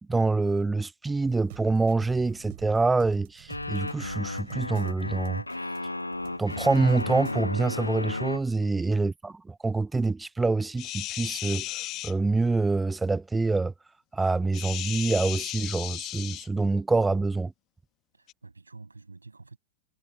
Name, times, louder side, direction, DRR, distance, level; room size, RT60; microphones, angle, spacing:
voice 1, 0.1-5.4 6.4-11.7 12.0-13.7 14.1-17.5, right 3 dB, 10° right, 0.4 m, -26 dB
sound 1, 1.3-7.4, right 23 dB, 50° right, 5.7 m, -48 dB
sound 2, 3.5-8.4, left 2 dB, 85° left, 0.8 m, -33 dB
voice 2, 8.6-9.0 18.1-19.6, right 3 dB, 80° right, 7.9 m, -48 dB
sound 3, 10.8-12.1 14.5-16.5 18.3-18.4, left 16 dB, 35° left, 1.3 m, -35 dB
figure-of-eight pair, 90°, 0 cm